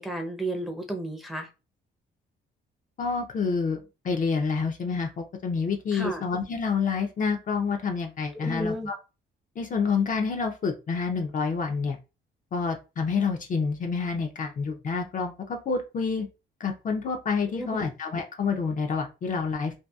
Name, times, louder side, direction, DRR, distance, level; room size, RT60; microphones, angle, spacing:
voice 1, 0.0-1.5 5.9-6.2 8.3-8.9 17.5-17.9, right 1 dB, ahead, 0.6 m, -32 dB
voice 2, 3.0-3.8 4.0-8.9 9.6-12.0 12.5-16.3 16.6-19.7, left 5 dB, 40° left, 0.5 m, -28 dB
2.7 x 2.3 x 2.2 m
cardioid pair, 90°, 20 cm